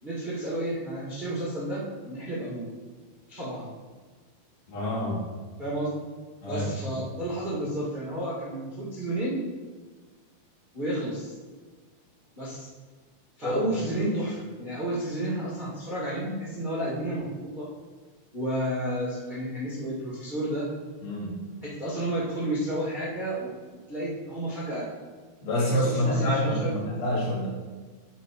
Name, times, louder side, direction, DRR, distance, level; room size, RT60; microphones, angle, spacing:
voice 1, 0.0-2.7 3.3-3.7 5.6-5.9 6.5-9.4 10.7-11.3 12.3-12.7 13.4-17.7 18.3-20.7 21.6-24.9 25.7-26.7, right 1 dB, 50° right, -8 dB, 0.5 m, -31 dB
voice 2, 4.7-5.3 6.4-7.0 13.4-13.6 21.0-21.4 25.4-27.5, equal, 75° left, -7 dB, 4.2 m, -27 dB
9.9 x 4.1 x 4.6 m, 1.4 s
omnidirectional pair, 4.3 m